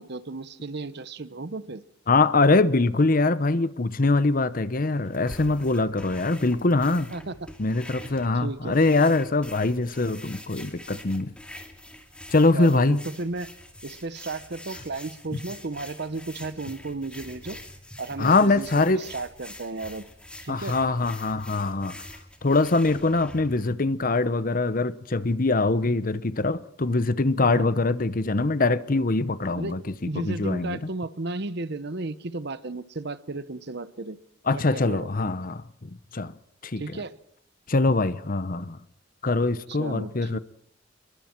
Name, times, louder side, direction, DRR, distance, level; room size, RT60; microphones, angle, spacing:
voice 1, 0.0-1.8 7.1-7.5 8.3-8.8 12.5-13.5 13.8-17.6 18.0-20.1 20.4-20.8 27.4-27.7 29.5-29.8 30.1-34.2 34.5-35.1 36.8-37.2 39.7-40.4, right 3 dB, 60° right, 1.0 m, -34 dB
voice 2, 2.1-7.1 7.6-11.3 12.3-13.0 18.2-19.0 20.5-22.0 22.4-29.8 30.1-30.8 34.5-36.3 36.6-36.8 37.7-38.8 39.2-40.4, left 3 dB, 45° left, 0.9 m, -23 dB
sound 1, 5.0-23.7, left 1 dB, 5° left, 2.5 m, -45 dB
27.5 x 22.0 x 4.6 m
head